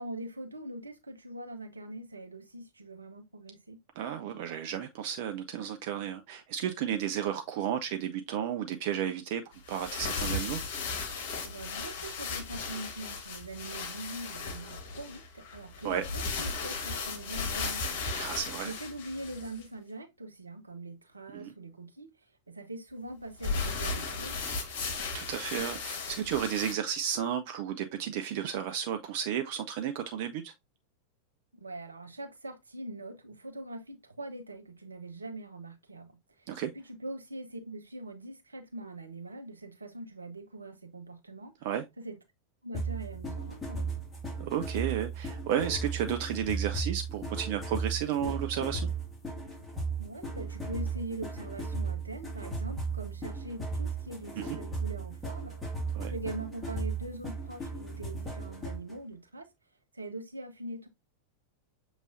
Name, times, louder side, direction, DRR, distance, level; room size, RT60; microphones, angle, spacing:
voice 1, 0.0-3.8 11.4-18.0 18.6-24.4 31.5-41.6 42.0-42.2 42.6-43.9 50.0-55.8 56.1-59.5 59.9-60.9, right 2 dB, 80° right, 0.8 m, -43 dB
voice 2, 4.0-9.4 9.7-10.6 15.8-16.0 18.1-18.7 21.3-21.5 24.9-30.5 36.5-36.7 41.6-41.8 44.4-48.9 54.4-54.6 55.9-56.1, right 9 dB, 50° right, 0.4 m, -33 dB
sound 1, 9.5-19.6 23.4-26.7, left 4 dB, 50° left, 1.2 m, -36 dB
sound 2, 42.7-58.9, right 3 dB, 5° left, 2.0 m, -36 dB
6.6 x 3.1 x 2.6 m
figure-of-eight pair, 90°, 0 cm